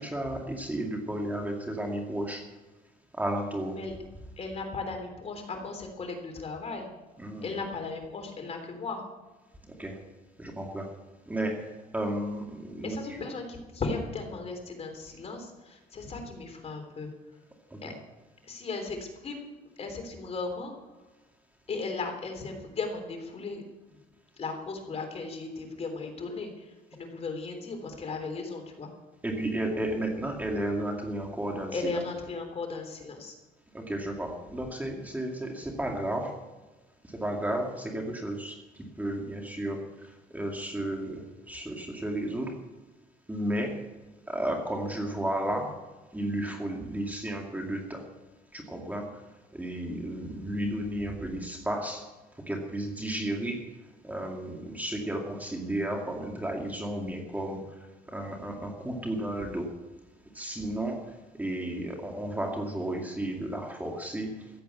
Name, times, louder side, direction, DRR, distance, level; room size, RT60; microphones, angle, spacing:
voice 1, 0.0-2.4 3.1-3.8 7.2-7.6 9.8-10.0 10.4-10.9 11.3-11.6 11.9-13.0 17.7-17.9 29.2-32.0 33.7-36.4 37.1-38.6 39.0-42.6 43.3-43.9 44.3-45.8 46.1-48.0 48.5-49.2 49.5-52.1 52.5-53.6 54.0-57.8 58.1-59.7 60.3-64.3, right 1 dB, 10° right, 1 dB, 2.3 m, -33 dB
voice 2, 4.4-6.9 7.4-9.0 12.8-17.4 17.8-17.9 18.4-19.5 19.8-20.7 21.7-23.6 24.4-28.9 31.7-33.4, left 3 dB, 40° left, 4 dB, 3.6 m, -36 dB
15.5 x 8.4 x 8.2 m, 1.2 s
cardioid pair, 110°, 17 cm